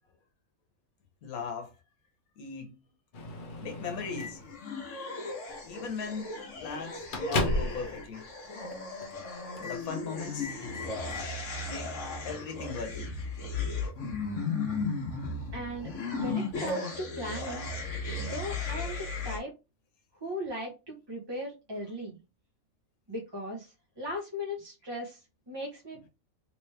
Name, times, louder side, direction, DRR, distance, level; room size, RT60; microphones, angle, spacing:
voice 1, 1.2-1.7 2.4-2.8 3.6-4.4 5.6-6.3 6.6-8.3 9.6-10.5 11.7-12.0 12.2-13.1, left 5 dB, 90° left, 1.3 m, -38 dB
Microwave oven, 3.1-4.5 5.5-5.7 6.1-6.2 6.6-7.9 8.2-8.3 9.0-9.3 9.5-9.8 10.2-11.3, left 2 dB, 45° left, 0.8 m, -35 dB
sound 1, 4.4-19.4, left 3 dB, 60° left, 1.2 m, -35 dB
voice 2, 15.5-17.7 18.2-19.5 20.2-22.2 23.1-26.1, equal, 25° right, 0.7 m, -38 dB
3.3 x 3.0 x 3.2 m
omnidirectional pair, 1.5 m